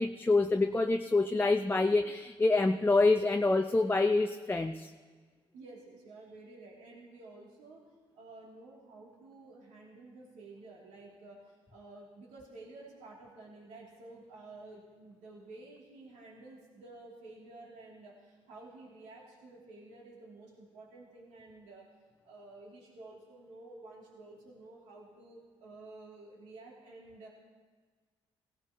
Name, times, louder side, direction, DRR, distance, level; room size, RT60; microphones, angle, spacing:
voice 1, 0.0-4.9, left 3 dB, 15° left, 5 dB, 0.6 m, -26 dB
voice 2, 5.5-7.8 8.1-21.9 22.2-27.3, right 2 dB, 80° right, -4 dB, 2.9 m, -51 dB
17.0 x 16.5 x 3.0 m, 1.5 s
supercardioid pair, 65°, 12 cm